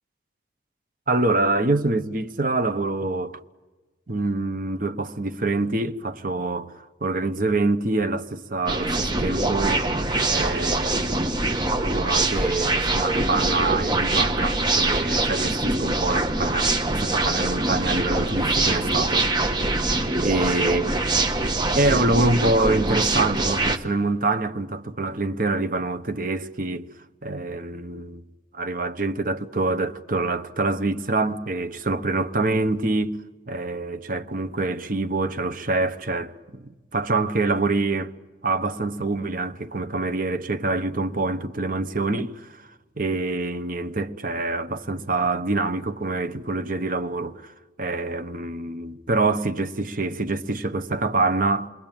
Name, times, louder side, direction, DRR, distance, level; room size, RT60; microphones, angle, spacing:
voice 1, 1.1-3.4 4.1-10.0 10.3-19.3 20.2-20.9 21.7-26.9 27.2-28.2 28.5-33.2 33.5-38.1 38.4-42.6 43.0-47.5 47.8-51.7, right 2 dB, 45° right, 1.1 m, -25 dB
sound 1, 8.7-23.8, right 2 dB, 25° right, 1.4 m, -24 dB
28.0 x 22.0 x 9.0 m
head